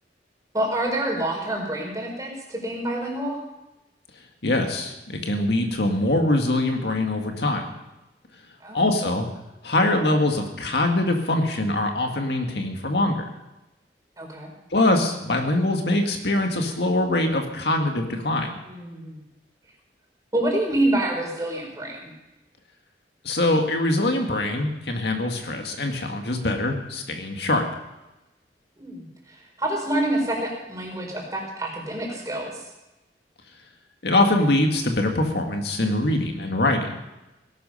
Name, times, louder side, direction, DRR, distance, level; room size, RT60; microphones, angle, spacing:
voice 1, 0.5-3.4 8.6-8.9 14.2-14.5 18.6-19.2 20.3-22.1 28.8-32.6, right 1 dB, 20° right, -1 dB, 4.5 m, -27 dB
voice 2, 4.4-7.6 8.7-9.2 9.6-13.2 14.7-18.6 23.2-27.6 34.0-36.9, left 2 dB, 70° left, 3 dB, 1.9 m, -23 dB
18.0 x 12.0 x 5.6 m, 0.98 s
head